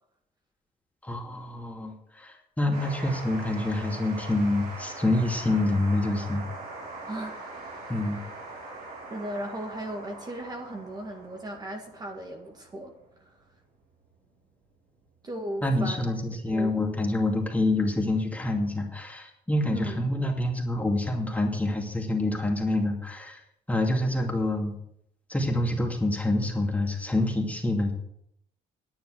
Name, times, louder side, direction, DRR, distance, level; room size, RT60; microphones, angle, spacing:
voice 1, 1.0-6.4 7.9-8.2 15.6-23.4 23.7-24.7 25.3-27.9, left 1 dB, 10° left, 1 dB, 2.5 m, -27 dB
sound 1, 2.7-15.7, right 2 dB, 65° right, 4.4 m, -42 dB
voice 2, 9.1-12.9 15.2-16.0 16.5-16.8 19.7-20.3, right 1 dB, 25° right, 2 dB, 1.9 m, -36 dB
10.5 x 8.8 x 6.4 m, 0.75 s
cardioid pair, 110°, 17 cm